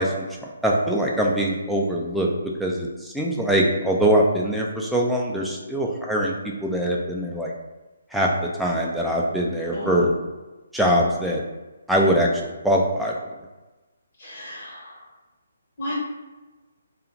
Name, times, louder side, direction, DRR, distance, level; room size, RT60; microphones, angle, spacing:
voice 1, 0.0-2.3 2.6-6.3 6.6-7.5 8.1-10.1 10.7-11.4 11.9-13.1, equal, ahead, -3 dB, 0.4 m, -22 dB
voice 2, 14.2-14.9 15.8-15.9, equal, 50° left, -8 dB, 1.2 m, -33 dB
2.4 x 2.4 x 2.9 m, 1.2 s
figure-of-eight pair, 145°, 0 cm